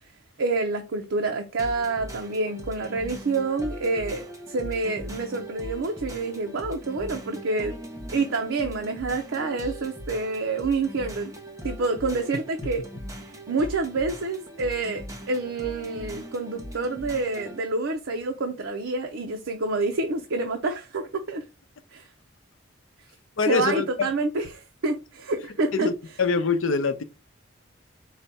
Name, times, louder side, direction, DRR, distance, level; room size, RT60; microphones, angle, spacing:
voice 1, 0.4-7.7 8.1-11.3 11.6-12.8 13.5-21.4 21.9-22.0 23.5-25.9, right 3 dB, 85° right, 0.6 m, -28 dB
sound 1, 1.6-17.6, equal, 15° right, 0.7 m, -39 dB
voice 2, 23.4-24.1 25.7-25.9 26.2-27.0, left 4 dB, 90° left, 0.6 m, -24 dB
4.8 x 2.2 x 4.1 m
head